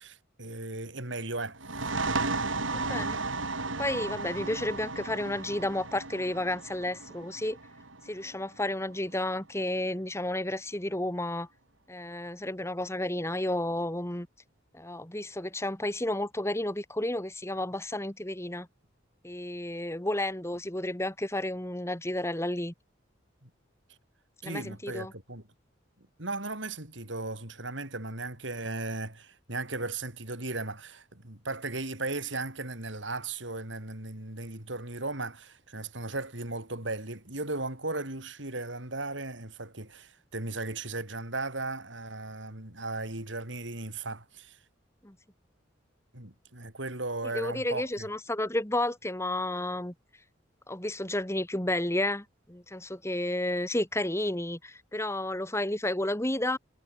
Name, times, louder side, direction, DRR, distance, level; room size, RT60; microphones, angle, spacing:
voice 1, 0.0-1.9 23.4-23.5 24.4-25.4 26.2-44.6 46.1-48.1, right 2 dB, 70° right, 5.5 m, -36 dB
sound 1, 1.6-9.0, right 3 dB, 90° right, 6.8 m, -34 dB
voice 2, 2.7-3.2 3.8-7.6 8.1-11.5 11.9-14.3 14.7-18.7 19.2-22.7 24.4-25.1 45.0-45.2 47.3-49.9 50.7-56.6, left 1 dB, 15° left, 2.7 m, -31 dB
head